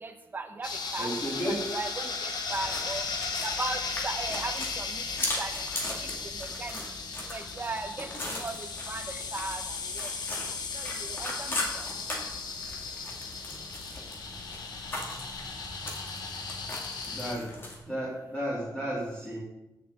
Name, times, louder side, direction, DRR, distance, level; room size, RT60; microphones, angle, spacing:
voice 1, 0.0-1.1 1.5-3.0 3.4-5.0 5.4-5.5 5.9-6.0 6.2-6.8 7.3-10.1 10.5-11.9, right 3 dB, 25° right, 5 dB, 1.0 m, -38 dB
sound 1, 0.6-17.3, left 4 dB, 70° left, 1.3 m, -36 dB
voice 2, 1.0-1.5 17.1-17.5 17.9-19.4, equal, 15° left, -9 dB, 3.5 m, -33 dB
sound 2, 2.4-17.8, left 1 dB, 30° left, 2.3 m, -39 dB
16.5 x 6.8 x 3.8 m, 0.94 s
wide cardioid pair, 175°, 7 cm